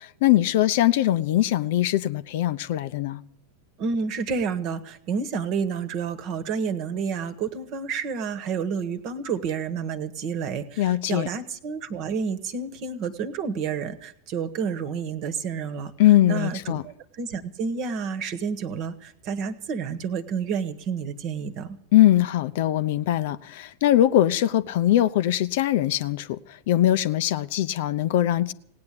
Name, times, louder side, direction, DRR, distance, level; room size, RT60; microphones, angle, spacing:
voice 1, 0.2-3.2 10.8-11.3 16.0-16.8 21.9-26.4 26.7-28.5, left 13 dB, 50° left, 0.6 m, -21 dB
voice 2, 3.8-15.9 16.3-21.8, right 6 dB, 40° right, 1.3 m, -30 dB
18.0 x 9.5 x 8.5 m
figure-of-eight pair, 90°, 0 cm